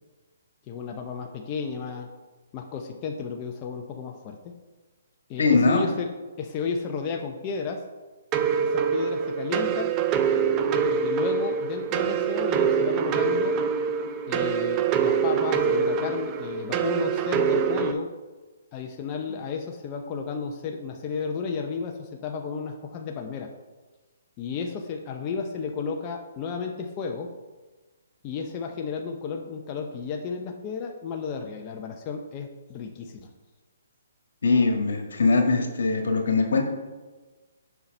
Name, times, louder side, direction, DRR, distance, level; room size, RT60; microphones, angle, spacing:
voice 1, 0.7-2.1 2.5-4.5 5.3-6.1 6.4-7.8 8.6-10.0 11.0-13.6 14.3-18.1 18.7-23.5 24.4-27.3 28.2-33.3, left 5 dB, 25° left, 2 dB, 0.7 m, -33 dB
voice 2, 5.4-5.8 34.4-36.6, left 3 dB, 75° left, 3 dB, 1.7 m, -21 dB
sound 1, 8.3-17.9, right 6 dB, 25° right, 0.5 m, -25 dB
7.0 x 5.6 x 5.4 m, 1.3 s
hypercardioid pair, 150°, 0 cm